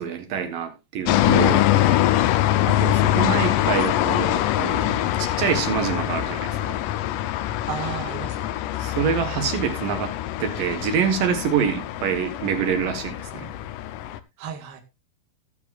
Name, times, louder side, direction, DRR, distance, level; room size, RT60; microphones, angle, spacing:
voice 1, 0.0-1.7 2.7-6.8 8.8-10.1 10.4-13.5, right 7 dB, 65° right, 2.8 m, -26 dB
sound 1, 1.1-14.2, left 13 dB, 80° left, 1.9 m, -23 dB
voice 2, 2.2-2.6 7.7-8.9 14.4-14.8, right 8 dB, 90° right, 3.6 m, -35 dB
20.5 x 7.0 x 2.4 m
omnidirectional pair, 4.6 m